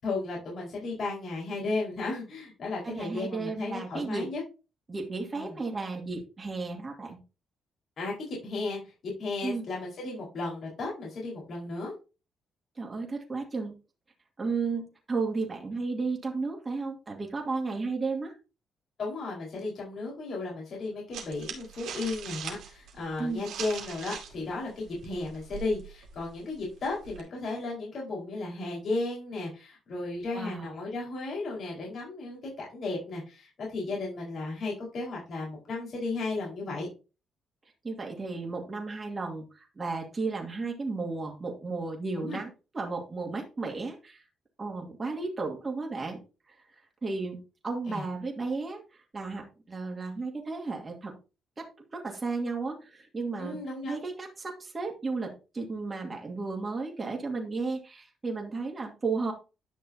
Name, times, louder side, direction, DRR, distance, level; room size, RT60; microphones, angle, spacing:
voice 1, 0.0-4.4 5.3-5.5 8.0-11.9 19.0-36.9 42.2-42.4 47.9-48.0 53.4-53.9, left 3 dB, 55° left, -3 dB, 4.9 m, -34 dB
voice 2, 2.8-4.3 4.9-7.2 9.4-9.7 12.8-13.7 14.4-18.3 23.2-23.5 30.3-30.7 37.8-42.5 42.7-44.2 44.6-46.2 46.5-46.6 47.0-51.1 51.6-53.6 53.9-59.3, right 3 dB, 30° right, 0 dB, 2.4 m, -34 dB
sound 1, 21.1-24.4 24.7-27.2, right 7 dB, 80° right, 2.3 m, -41 dB
11.0 x 6.1 x 2.9 m, 0.30 s
cardioid pair, 90°, 0 cm